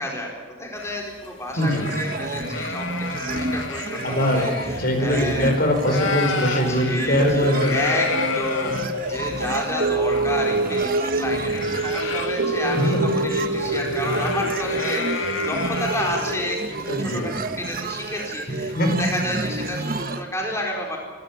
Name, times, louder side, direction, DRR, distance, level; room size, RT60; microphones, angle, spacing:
voice 1, 0.0-5.6 6.7-8.1 8.3-16.6 17.0-17.3 17.6-21.0, left 1 dB, 15° left, -1 dB, 4.2 m, -30 dB
sound 1, 0.8-5.5 5.7-18.7, left 5 dB, 75° left, 2.1 m, -33 dB
voice 2, 1.6-1.9 4.0-7.7 12.8-13.0 13.4-13.5 16.8-17.3 18.7-19.0, equal, 50° left, 4 dB, 4.8 m, -22 dB
sound 2, 1.6-20.2, right 2 dB, 50° right, 1.4 m, -31 dB
sound 3, 7.2-17.6 18.0-18.1, right 2 dB, 80° right, 1.6 m, -27 dB
27.0 x 13.5 x 8.7 m, 1.5 s
head